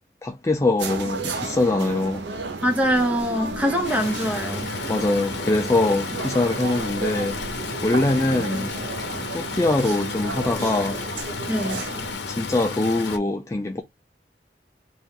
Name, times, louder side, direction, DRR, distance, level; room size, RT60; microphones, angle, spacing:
voice 1, 0.2-2.2 4.9-7.4 7.8-8.7 9.3-11.0 12.3-13.8, left 2 dB, 15° left, 0.4 m, -23 dB
sound 1, 0.8-12.1, right 4 dB, 80° right, 0.8 m, -33 dB
voice 2, 2.6-4.7 11.5-11.8, equal, 10° right, 0.9 m, -23 dB
Stream, 3.8-13.2, left 4 dB, 75° left, 0.8 m, -33 dB
4.2 x 2.6 x 3.6 m
head